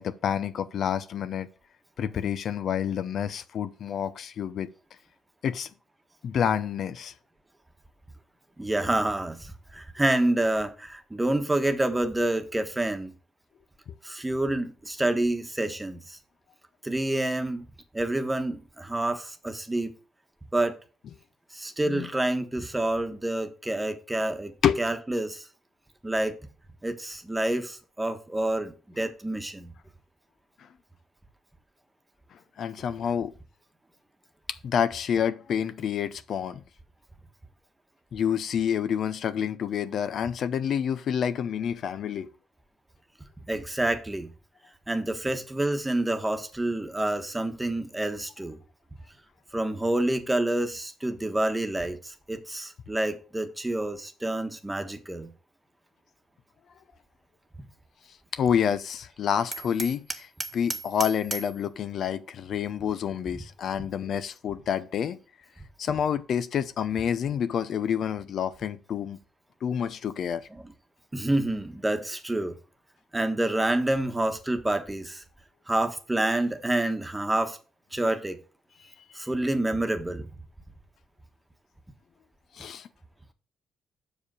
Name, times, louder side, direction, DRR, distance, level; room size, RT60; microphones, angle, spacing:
voice 1, 0.0-1.5 2.0-4.7 5.4-5.7 6.2-7.1 21.9-22.1 24.6-24.8 32.3-33.3 34.6-36.6 38.1-42.3 58.3-65.2 65.8-69.2 69.6-70.5 82.5-82.9, left 8 dB, 65° left, 0.6 m, -28 dB
voice 2, 8.6-13.1 14.0-16.2 16.8-17.6 17.9-19.9 20.5-20.7 21.5-25.5 26.0-26.4 26.8-29.7 43.5-44.3 44.9-48.6 49.5-55.3 70.5-70.7 71.1-72.6 73.1-75.2 75.7-77.6 77.9-78.4 79.1-80.3, right 1 dB, 10° right, 1.2 m, -28 dB
Hammer, 59.5-61.6, right 4 dB, 35° right, 0.9 m, -35 dB
6.8 x 5.0 x 6.2 m
cardioid pair, 90°, 0 cm